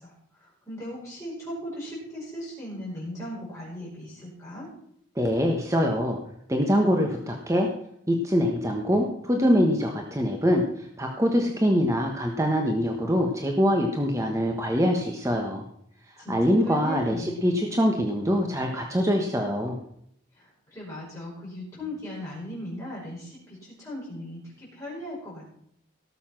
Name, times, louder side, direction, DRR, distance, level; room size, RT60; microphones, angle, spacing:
voice 1, 0.0-4.7 16.2-17.6 20.3-25.6, left 1 dB, 15° left, -7 dB, 5.6 m, -38 dB
voice 2, 5.1-6.2 6.5-7.7 8.1-15.6 16.3-19.7, equal, 15° right, 1 dB, 1.3 m, -24 dB
18.0 x 7.0 x 6.0 m, 0.70 s
head